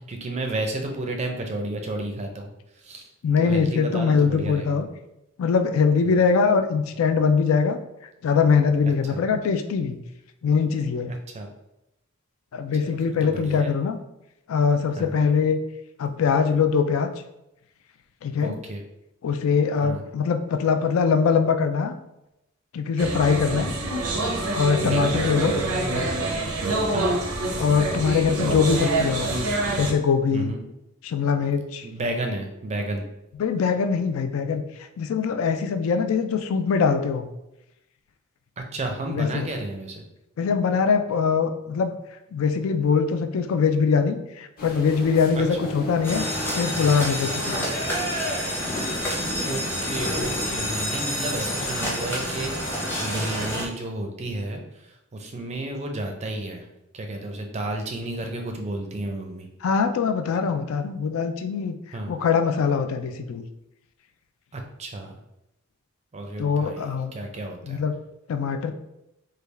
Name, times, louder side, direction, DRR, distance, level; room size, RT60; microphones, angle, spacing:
voice 1, 0.1-2.5 2.8-3.0 3.4-4.8 6.0-6.2 8.8-9.2 11.1-11.5 12.8-13.7 15.0-15.2 18.4-18.8 19.8-20.0 23.5-23.7 24.9-25.2 26.9-27.2 30.3-30.6 31.8-33.0 38.6-40.0 45.3-45.4 49.4-56.7 56.9-59.5 61.9-62.1 64.5-65.2 66.1-67.8, right 2 dB, 30° right, 3 dB, 0.4 m, -32 dB
voice 2, 3.2-4.9 5.4-7.8 8.2-10.0 10.4-11.1 12.5-14.0 14.5-15.6 16.0-17.1 18.2-18.6 19.2-21.9 22.7-23.7 24.5-25.6 27.6-29.3 29.8-30.5 31.0-31.9 33.4-34.6 35.0-37.3 39.1-39.5 40.4-41.9 42.3-46.2 46.5-47.7 59.6-61.8 62.1-63.4 66.4-67.1 67.7-67.9 68.3-68.7, left 5 dB, 65° left, 7 dB, 0.3 m, -22 dB
sound 1, 23.0-29.9, right 2 dB, 85° right, 0.6 m, -26 dB
sound 2, 44.6-50.8, left 1 dB, 40° left, 0.8 m, -35 dB
sound 3, 46.0-53.7, equal, 10° left, 0.7 m, -28 dB
3.4 x 2.3 x 3.2 m, 0.88 s
head